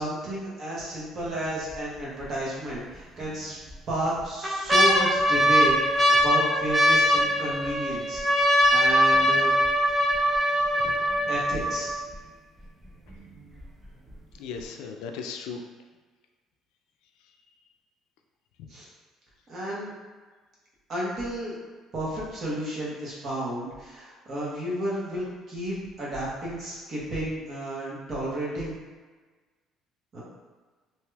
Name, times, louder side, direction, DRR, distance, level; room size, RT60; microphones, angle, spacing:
voice 1, 0.0-3.6 3.9-9.5 11.3-11.9 18.7-18.9 19.5-19.9 20.9-21.5 21.9-28.7 30.1-30.2, right 1 dB, 30° right, -7 dB, 0.9 m, -32 dB
sound 1, 1.2-1.7 2.2-2.3 3.2-3.7 4.2-12.1 12.9-13.0 13.1-13.6 14.1-14.2, equal, 10° right, 0.4 m, -22 dB
voice 2, 10.2-11.1 14.3-15.6, left 5 dB, 85° left, 3 dB, 0.3 m, -38 dB
2.8 x 2.3 x 3.2 m, 1.4 s
cardioid pair, 180°, 0 cm